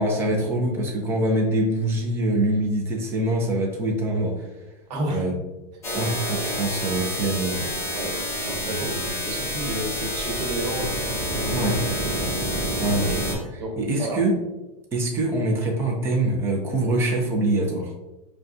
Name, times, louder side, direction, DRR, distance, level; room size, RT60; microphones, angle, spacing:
voice 1, 0.0-4.5 5.1-5.3 5.9-8.0 8.7-9.0 11.5-11.8 12.8-13.4 13.8-14.3 14.9-17.9, right 1 dB, 10° right, 0 dB, 0.3 m, -24 dB
voice 2, 4.9-5.3 5.8-6.0 7.9-11.7 12.0-12.3 13.6-14.3, right 1 dB, 80° right, 0 dB, 1.2 m, -31 dB
sound 1, 5.8-13.4, equal, 15° left, 0.7 m, -28 dB
5.2 x 2.3 x 2.5 m, 1.0 s
supercardioid pair, 165°, 21 cm